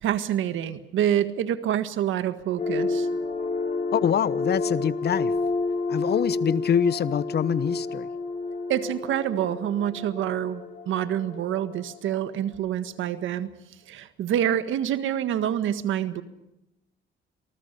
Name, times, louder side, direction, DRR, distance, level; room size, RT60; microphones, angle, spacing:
voice 1, 0.0-3.1 8.7-13.5 13.9-16.2, right 10 dB, 80° right, 1.7 m, -27 dB
sound 1, 2.6-12.4, left 3 dB, 35° left, 7.3 m, -30 dB
voice 2, 3.9-5.3 5.9-8.1, left 8 dB, 55° left, 1.0 m, -25 dB
27.5 x 20.0 x 6.8 m
cardioid pair, 90°, 20 cm